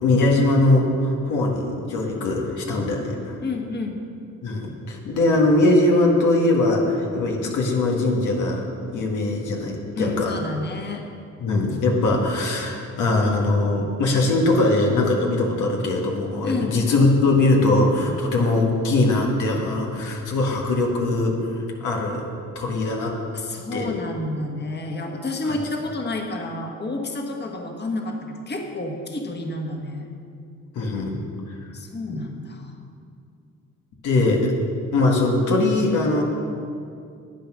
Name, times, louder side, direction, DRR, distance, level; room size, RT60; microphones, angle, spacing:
voice 1, 0.0-3.3 4.4-8.6 8.9-10.3 11.4-22.2 22.6-23.2 23.7-23.9 25.4-25.6 30.8-31.2 32.1-32.2 34.0-34.5 34.9-36.2, left 2 dB, 85° left, -1 dB, 1.8 m, -21 dB
voice 2, 3.4-4.0 9.9-11.0 16.4-16.8 23.3-30.1 31.7-32.7, left 2 dB, 35° left, 2 dB, 1.5 m, -30 dB
10.0 x 9.0 x 6.2 m, 2.4 s
cardioid pair, 90°, 30 cm